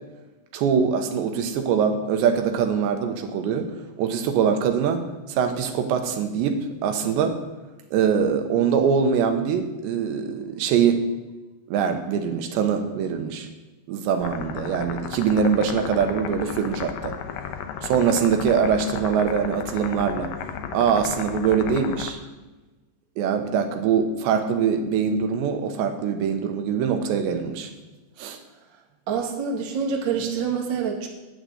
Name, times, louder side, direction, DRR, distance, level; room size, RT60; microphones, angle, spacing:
voice 1, 0.5-7.4 7.9-11.0 11.7-13.5 13.9-17.1 17.8-20.3 20.7-22.2 23.2-27.7 28.2-28.4, right 7 dB, 85° right, 6 dB, 3.2 m, -23 dB
sound 1, 14.2-22.1, left 8 dB, 75° left, 2.1 m, -34 dB
voice 2, 29.1-31.1, right 6 dB, 55° right, 0 dB, 1.2 m, -26 dB
9.7 x 9.2 x 7.9 m, 1.2 s
omnidirectional pair, 5.0 m